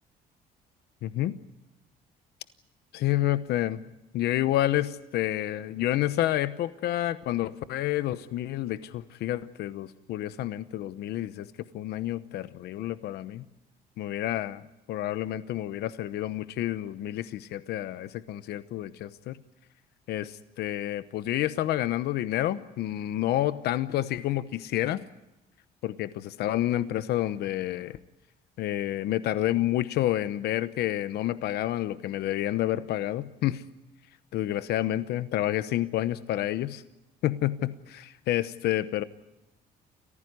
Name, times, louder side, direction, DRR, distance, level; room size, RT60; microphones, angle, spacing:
voice 1, 1.0-1.3 2.9-3.8 4.1-11.5 11.7-13.4 14.0-14.6 14.9-19.4 20.1-25.0 25.8-28.0 28.6-33.6 34.3-36.8 37.2-39.0, left 14 dB, 75° left, 13 dB, 0.9 m, -29 dB
29.5 x 15.0 x 9.6 m, 0.94 s
cardioid pair, 110°, 17 cm